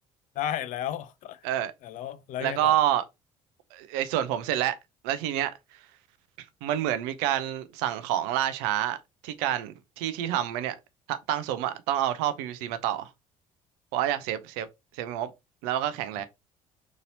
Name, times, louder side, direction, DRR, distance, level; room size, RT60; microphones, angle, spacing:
voice 1, 0.4-1.4 1.8-2.8 16.2-16.3, left 10 dB, 50° left, 0.5 m, -33 dB
voice 2, 2.4-3.0 3.7-4.7 5.0-5.5 6.6-9.0 9.2-10.8 11.1-13.1 13.9-14.7 14.9-15.3 15.6-16.2, right 12 dB, 65° right, 0.5 m, -28 dB
3.8 x 3.0 x 2.7 m
figure-of-eight pair, 55°, 17 cm